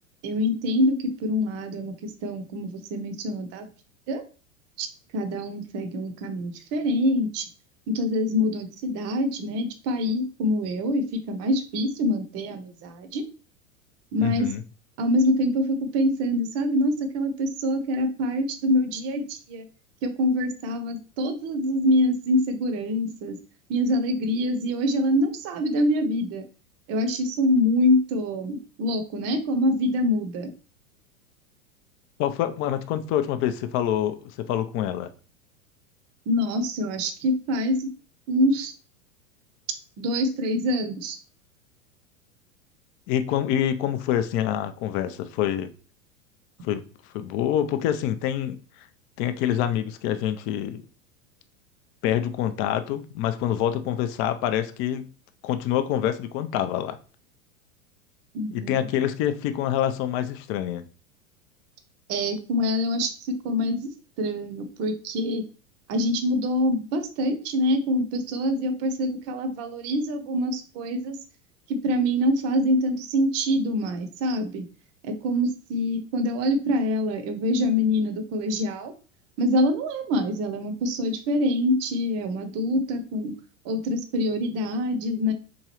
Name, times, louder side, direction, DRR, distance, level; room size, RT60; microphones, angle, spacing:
voice 1, 0.2-3.7 4.1-4.2 4.8-4.9 5.1-7.5 7.9-13.2 14.1-14.5 15.0-19.7 20.0-23.4 23.7-26.4 26.9-30.5 36.3-37.9 38.3-38.7 40.0-41.2 58.3-58.9 62.1-63.9 64.2-65.4 65.9-71.2 71.7-74.6 75.0-78.9 79.4-83.3 83.6-85.3, left 1 dB, 40° right, 0.7 m, -25 dB
voice 2, 14.2-14.6 32.2-35.1 43.1-45.7 46.6-46.8 47.1-48.9 49.2-50.8 52.0-55.0 55.4-57.0 58.5-60.8, left 10 dB, 35° left, 0.4 m, -26 dB
3.7 x 3.0 x 2.9 m
hypercardioid pair, 100°, 39 cm